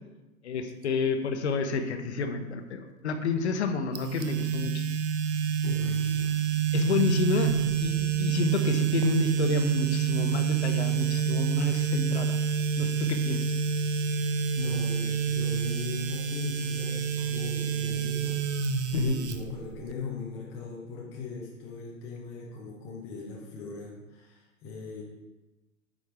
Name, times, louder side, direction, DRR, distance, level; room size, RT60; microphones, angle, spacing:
voice 1, 0.4-4.8 6.7-7.5 7.8-12.3 12.8-13.6 18.9-19.2, left 4 dB, 55° left, 7 dB, 0.9 m, -29 dB
sound 1, 4.0-19.9, right 8 dB, 55° right, 0.6 m, -28 dB
voice 2, 5.6-6.4 7.4-7.6 14.6-25.0, left 4 dB, 5° left, -4 dB, 0.4 m, -39 dB
8.8 x 5.2 x 3.2 m, 1.1 s
figure-of-eight pair, 110°, 41 cm